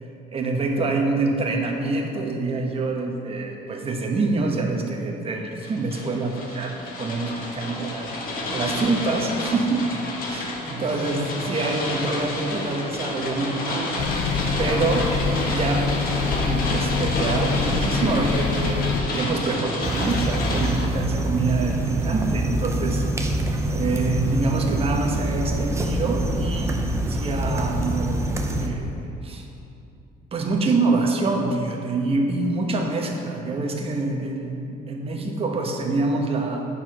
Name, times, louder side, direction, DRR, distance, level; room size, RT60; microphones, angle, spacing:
voice 1, 0.3-15.1 15.5-15.9 16.5-23.0 23.7-26.8 27.1-29.5 30.3-36.7, right 3 dB, 35° right, 1 dB, 1.0 m, -26 dB
sound 1, 5.6-20.9, left 2 dB, 60° left, 1.4 m, -30 dB
sound 2, 14.0-19.0, left 4 dB, 75° left, 0.7 m, -25 dB
sound 3, 19.8-28.7, right 1 dB, 15° right, 0.7 m, -25 dB
8.5 x 4.6 x 6.0 m, 2.7 s
cardioid pair, 110°, 17 cm